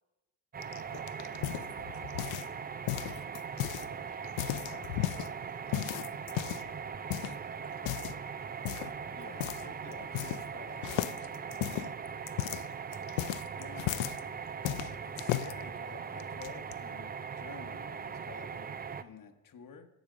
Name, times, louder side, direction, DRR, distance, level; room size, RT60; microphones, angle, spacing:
sound 1, 0.5-19.0, right 6 dB, 20° right, 0.4 m, -40 dB
sound 2, 0.6-2.6 2.9-3.9 4.2-5.3 5.7-6.7 7.1-7.4 7.8-8.2 8.7-9.0 9.4-9.7 9.9-10.6 10.8-14.2 14.7-15.5 16.2-16.7, left 16 dB, 80° left, 0.6 m, -35 dB
voice 1, 0.7-5.3 5.6-8.2, right 5 dB, 65° right, -2 dB, 1.8 m, -58 dB
voice 2, 9.1-12.0 12.8-13.0 13.6-14.0 14.7-19.9, left 7 dB, 45° left, 6 dB, 1.3 m, -52 dB
15.5 x 5.2 x 6.3 m, 1.0 s
supercardioid pair, 75°, 45 cm